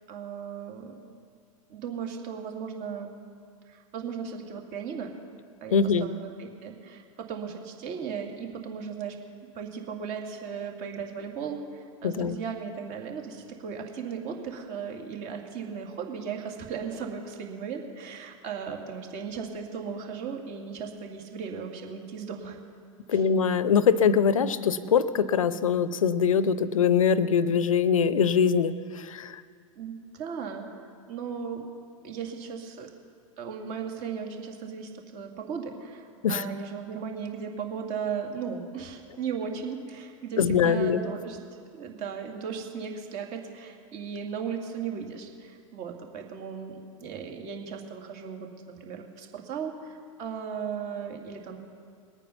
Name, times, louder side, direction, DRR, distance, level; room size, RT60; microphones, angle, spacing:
voice 1, 0.1-1.0 1.7-3.1 3.7-5.1 5.6-9.2 9.5-22.6 23.1-23.2 29.8-30.6 31.1-31.6 32.0-32.9 33.4-41.4 41.7-51.6, right 6 dB, 45° right, 3 dB, 2.4 m, -36 dB
voice 2, 5.7-6.1 12.0-12.4 23.1-29.4 36.2-36.4 40.4-41.0, left 7 dB, 75° left, 17 dB, 0.6 m, -23 dB
21.0 x 9.0 x 5.7 m, 2.2 s
figure-of-eight pair, 95°, 17 cm